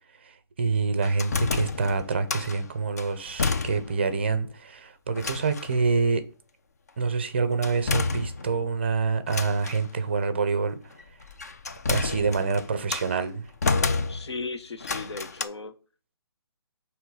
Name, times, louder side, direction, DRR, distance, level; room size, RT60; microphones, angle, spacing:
voice 1, 0.2-6.2 7.0-10.8 11.9-13.4, right 4 dB, 25° right, 0.5 m, -26 dB
sound 1, 1.0-2.6 3.0-4.1 4.4-4.5 5.1-5.8 7.6-8.7 9.3-9.9 11.0-13.1 13.6-14.4 14.8-15.4, left 4 dB, 40° left, 0.4 m, -29 dB
voice 2, 14.1-15.8, left 3 dB, 85° left, 1.0 m, -36 dB
7.5 x 3.0 x 4.7 m
hypercardioid pair, 180°, 14 cm